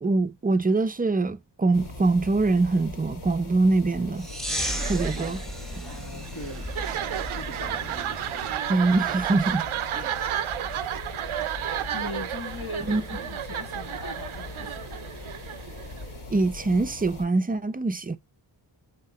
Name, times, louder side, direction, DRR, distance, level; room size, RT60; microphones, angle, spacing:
voice 1, 0.0-4.3 4.9-5.4 8.7-9.7 9.9-10.1 12.9-13.0 16.3-18.2, right 3 dB, 20° right, 0.5 m, -24 dB
sound 1, 1.7-17.3, left 2 dB, 85° left, 2.1 m, -41 dB
sound 2, 4.2-8.6, equal, ahead, 1.1 m, -35 dB
sound 3, 4.5-16.2, right 11 dB, 90° right, 0.7 m, -32 dB
voice 2, 5.8-6.6 7.2-7.8 11.9-15.1, left 2 dB, 50° left, 1.8 m, -40 dB
8.1 x 3.0 x 4.1 m
wide cardioid pair, 85°, 48 cm